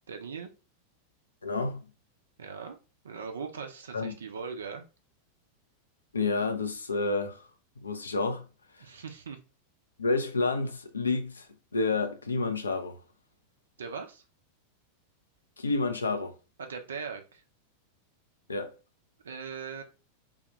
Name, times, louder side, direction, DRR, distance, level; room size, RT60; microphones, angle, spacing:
voice 1, 0.1-0.5 2.4-2.7 3.0-4.8 8.8-9.4 13.8-14.2 16.6-17.4 19.2-19.8, right 5 dB, 65° right, 0.7 m, -39 dB
voice 2, 1.4-1.8 3.9-4.1 6.1-7.5 7.8-8.4 8.8-8.9 10.0-11.5 11.7-13.0 15.6-16.3 18.5-18.8, left 3 dB, 75° left, 0.6 m, -29 dB
3.6 x 2.4 x 3.1 m
figure-of-eight pair, 90°, 0 cm